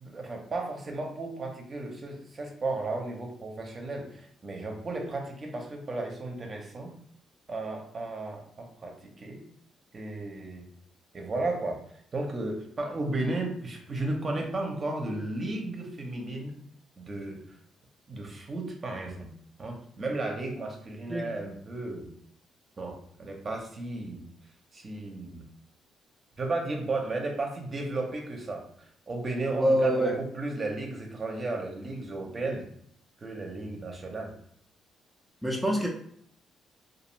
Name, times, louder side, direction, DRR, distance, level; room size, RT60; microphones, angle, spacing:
voice 1, 0.0-6.9 7.5-9.4 9.9-10.7 11.1-11.8 12.1-16.6 17.0-17.6 18.1-19.3 19.6-22.1 22.8-24.2 24.7-25.4 26.4-32.6 33.2-34.3, right 2 dB, 35° right, 2 dB, 0.7 m, -34 dB
voice 2, 29.5-30.2 35.4-35.9, equal, ahead, -2 dB, 0.5 m, -25 dB
2.4 x 2.4 x 3.0 m, 0.64 s
cardioid pair, 90°, 0 cm